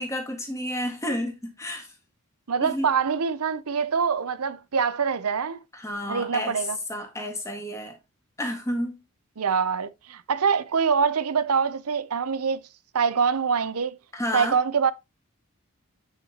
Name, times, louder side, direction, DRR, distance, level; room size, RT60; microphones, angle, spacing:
voice 1, 0.0-1.9 2.6-2.9 5.7-6.6 6.9-8.0 8.4-9.0 14.1-14.6, equal, 15° left, 1.9 m, -31 dB
voice 2, 2.5-5.6 6.1-6.8 9.4-12.6 12.9-14.0 14.3-14.9, right 6 dB, 80° right, 0.7 m, -24 dB
9.0 x 5.9 x 3.0 m
head